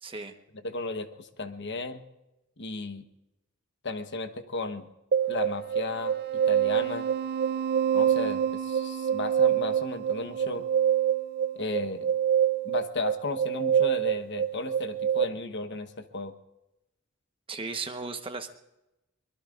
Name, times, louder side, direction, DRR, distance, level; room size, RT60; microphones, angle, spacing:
voice 1, 0.0-0.3 17.5-18.5, right 4 dB, 25° right, 6 dB, 1.2 m, -36 dB
voice 2, 0.6-2.0 2.6-3.1 3.8-4.9 5.3-6.1 6.5-7.1 7.9-10.6 11.6-12.1 12.6-16.3, left 3 dB, 55° left, 8 dB, 1.1 m, -34 dB
sound 1, 5.1-15.2, right 9 dB, 45° right, 0.5 m, -26 dB
23.5 x 21.0 x 2.5 m, 0.94 s
head